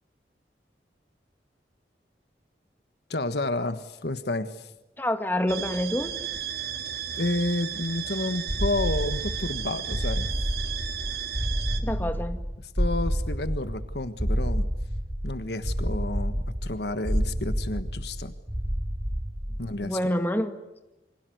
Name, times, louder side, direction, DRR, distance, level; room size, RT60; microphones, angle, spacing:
voice 1, 3.1-4.7 7.1-10.3 11.8-12.1 12.6-14.7 15.2-18.3 19.6-20.0, left 2 dB, 70° left, 10 dB, 1.5 m, -30 dB
voice 2, 5.0-6.1 11.8-12.4 19.8-20.6, left 1 dB, 10° left, 7 dB, 2.1 m, -27 dB
sound 1, 5.5-11.8, right 9 dB, 60° right, 3.0 m, -34 dB
sound 2, 8.5-19.8, equal, 25° right, 2.1 m, -29 dB
29.0 x 25.5 x 7.9 m, 1.0 s
head